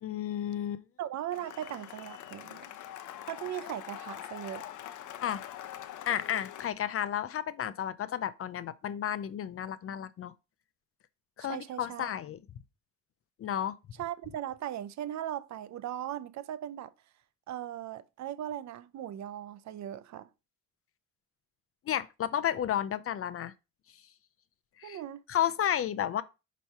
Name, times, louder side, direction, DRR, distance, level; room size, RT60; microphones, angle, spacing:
voice 1, 0.0-0.8 5.2-5.4 6.1-10.3 11.4-12.4 13.4-13.8 21.9-23.5 24.8-25.0 25.3-26.2, left 10 dB, 50° left, 0.5 m, -32 dB
voice 2, 1.0-2.6 3.3-4.6 11.4-12.1 14.0-16.9 17.5-20.3 24.8-25.2, right 11 dB, 65° right, 0.6 m, -38 dB
Cheering / Applause, 1.3-6.7, left 11 dB, 80° left, 0.7 m, -44 dB
5.6 x 3.1 x 5.4 m
cardioid pair, 90°, 30 cm